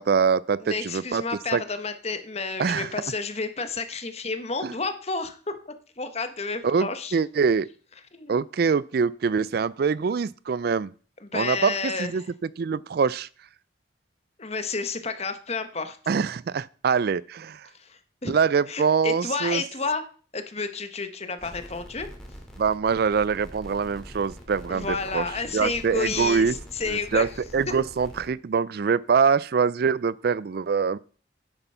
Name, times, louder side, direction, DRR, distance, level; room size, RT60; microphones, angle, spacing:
voice 1, 0.0-1.2 1.5-1.6 2.6-2.9 4.6-4.7 6.6-7.7 8.3-10.9 11.3-12.2 12.6-13.3 16.1-17.7 18.3-19.6 22.6-25.2 25.5-26.5 26.9-27.3 27.5-31.0, right 5 dB, 55° right, 0.4 m, -24 dB
voice 2, 0.6-5.4 5.6-7.2 8.1-8.4 11.2-12.3 14.4-16.0 17.7-18.3 18.7-20.0 20.3-22.1 24.7-27.3, left 4 dB, 35° left, 1.2 m, -31 dB
sound 1, 21.4-28.3, equal, 5° left, 2.5 m, -44 dB
10.0 x 7.9 x 5.6 m
head